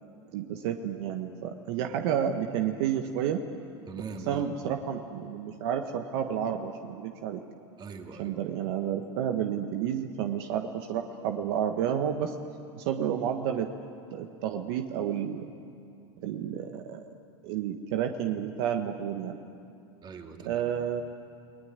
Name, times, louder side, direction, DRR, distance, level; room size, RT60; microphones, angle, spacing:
voice 1, 0.3-3.4 4.3-7.4 8.2-12.3 12.8-13.7 14.1-15.5 16.2-17.1 17.4-19.4 20.4-21.0, right 9 dB, 65° right, 5 dB, 1.4 m, -30 dB
voice 2, 3.9-4.7 7.8-8.4 20.0-20.7, right 4 dB, 30° right, 3 dB, 2.8 m, -42 dB
29.5 x 19.0 x 9.6 m, 2.6 s
hypercardioid pair, 110°, 15 cm